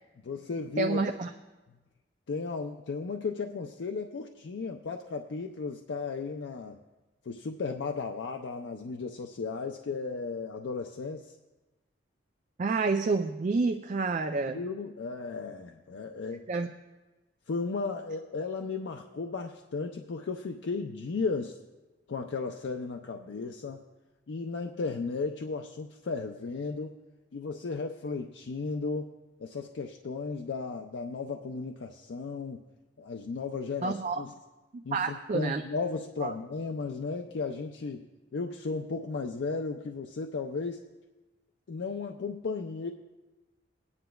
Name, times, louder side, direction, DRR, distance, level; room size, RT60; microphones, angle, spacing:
voice 1, 0.2-1.0 2.3-6.8 7.3-11.3 14.5-16.5 17.5-21.6 22.1-23.8 24.3-26.9 27.3-29.1 29.4-32.6 33.0-34.3 34.8-40.8 41.7-42.9, left 4 dB, 65° left, 4 dB, 0.4 m, -35 dB
voice 2, 0.8-1.3 12.6-14.6 16.5-16.7 33.8-34.2 34.7-35.6 36.2-36.3, right 3 dB, 40° right, 6 dB, 0.3 m, -29 dB
19.0 x 9.6 x 2.3 m, 1.1 s
head